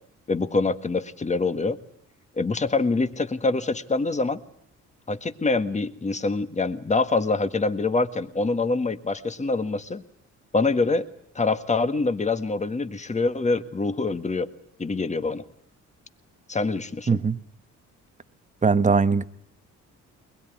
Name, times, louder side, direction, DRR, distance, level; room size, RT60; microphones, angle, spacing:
voice 1, 0.3-1.8 2.4-4.4 5.1-10.0 10.5-11.1 11.4-14.5 14.8-15.4 16.5-17.2, left 3 dB, 25° left, 1.6 m, -25 dB
voice 2, 17.1-17.4 18.6-19.2, right 5 dB, 25° right, 1.2 m, -20 dB
22.5 x 21.0 x 9.6 m
cardioid pair, 90°, 30 cm